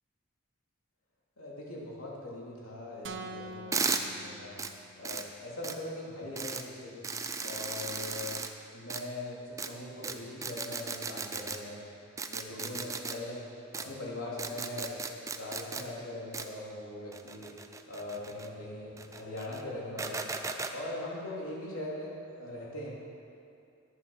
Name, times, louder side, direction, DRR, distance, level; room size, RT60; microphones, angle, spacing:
voice 1, 1.4-4.6 5.0-7.1 7.4-8.4 8.7-11.9 12.3-15.0 15.3-17.5 17.9-20.2 20.7-22.9, left 1 dB, 85° left, -4 dB, 3.0 m, -41 dB
sound 1, 3.0-5.1, right 2 dB, 55° right, 0.8 m, -44 dB
sound 2, 3.7-4.0 4.6-4.7 5.0-5.2 5.6-5.7 6.4-6.6 7.0-8.5 8.9-9.0 9.6-9.7 10.0-10.1 10.4-11.6 12.2-13.1 13.7-13.8 14.4-15.8 16.3-16.4 17.1-18.5 19.0-19.6 20.0-20.7, right 4 dB, 15° right, 0.5 m, -35 dB
11.0 x 9.5 x 6.3 m, 2.5 s
head